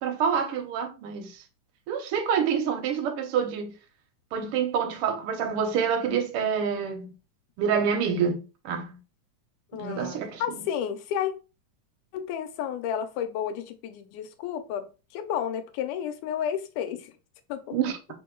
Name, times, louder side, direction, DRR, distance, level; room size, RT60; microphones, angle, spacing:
voice 1, 0.0-1.4 1.9-3.7 4.3-7.1 7.6-9.0 9.8-10.4 17.7-18.0, right 7 dB, 70° right, 1.3 m, -27 dB
voice 2, 9.7-11.3 12.1-17.1 17.5-17.8, left 9 dB, 90° left, 2.2 m, -32 dB
4.5 x 2.8 x 3.7 m
omnidirectional pair, 3.5 m